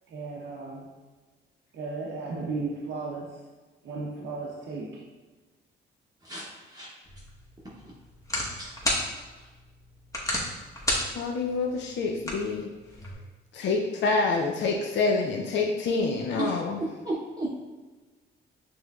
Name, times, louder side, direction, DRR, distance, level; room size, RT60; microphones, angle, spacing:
voice 1, 0.1-0.9 1.7-3.4 3.8-5.0, right 3 dB, 70° right, -4 dB, 0.7 m, -35 dB
voice 2, 6.2-6.9 7.8-7.9 8.6-8.7 9.3-9.5 16.4-16.5 17.0-17.5, right 2 dB, 20° right, -6 dB, 0.8 m, -34 dB
sound 1, 7.1-13.1, left 1 dB, 15° left, 1.0 m, -34 dB
voice 3, 11.1-12.7 13.5-16.8, left 3 dB, 65° left, 1 dB, 0.5 m, -27 dB
6.1 x 3.1 x 2.3 m, 1.3 s
cardioid pair, 90°, 20 cm